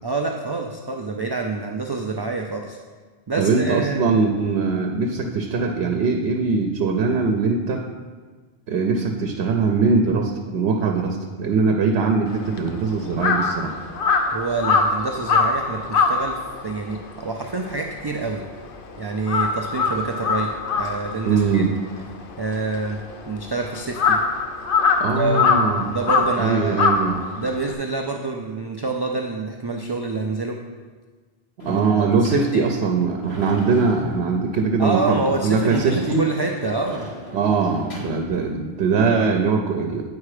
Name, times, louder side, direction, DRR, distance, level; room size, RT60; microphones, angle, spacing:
voice 1, 0.0-2.8 3.3-4.1 14.3-18.4 19.0-21.6 22.4-23.0 23.3-24.2 25.1-25.5 25.8-26.9 27.4-30.6 31.7-32.6 34.8-37.1, right 3 dB, 40° right, 2 dB, 0.3 m, -27 dB
voice 2, 3.3-7.8 8.7-13.7 21.2-21.7 25.0-25.9 26.4-27.2 31.6-36.2 37.3-40.0, right 4 dB, 90° right, 3 dB, 0.9 m, -21 dB
Crow, 12.3-18.8 19.1-27.7, left 4 dB, 60° left, 0.8 m, -23 dB
Sliding door / Slam, 31.6-38.3, left 1 dB, 85° left, 2.2 m, -38 dB
8.4 x 4.6 x 4.9 m, 1.4 s
omnidirectional pair, 1.1 m